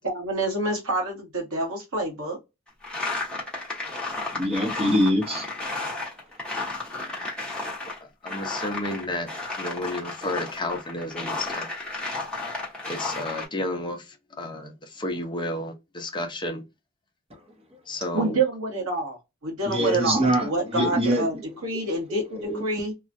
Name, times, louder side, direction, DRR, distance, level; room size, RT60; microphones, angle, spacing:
voice 1, 0.0-2.4 18.1-22.9, right 2 dB, 85° right, 1.4 m, -27 dB
sound 1, 2.8-8.0 8.3-13.5, left 3 dB, 5° left, 1.0 m, -33 dB
voice 2, 4.3-5.4 19.7-21.3 22.4-22.6, equal, 30° right, 0.9 m, -23 dB
voice 3, 8.2-9.3 9.6-11.7 12.9-14.0 14.4-14.7 15.0-16.6 17.9-18.4 20.7-20.9, left 1 dB, 20° left, 0.6 m, -31 dB
2.9 x 2.3 x 2.5 m
head